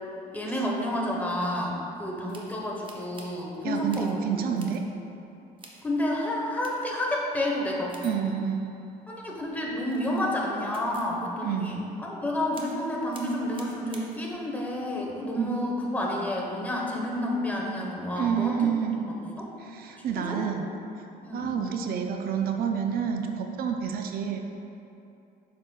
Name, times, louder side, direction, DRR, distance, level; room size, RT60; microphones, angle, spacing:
voice 1, 0.3-4.2 5.8-8.0 9.1-18.7 19.4-19.5 20.0-20.4 21.2-21.5, left 1 dB, 10° left, -2 dB, 1.0 m, -30 dB
sound 1, 2.3-3.5 3.9-4.2 4.6-4.8 5.6-5.9 6.6-6.9 7.9-9.3 9.8-11.1 12.5-12.8 13.1-14.3, right 3 dB, 30° right, 0.8 m, -50 dB
voice 2, 3.6-4.8 8.0-8.7 11.4-11.8 15.3-15.6 18.2-19.0 19.6-21.0 21.3-24.4, right 7 dB, 60° right, 4 dB, 0.4 m, -29 dB
7.3 x 6.1 x 2.3 m, 2.8 s
cardioid pair, 110°, 17 cm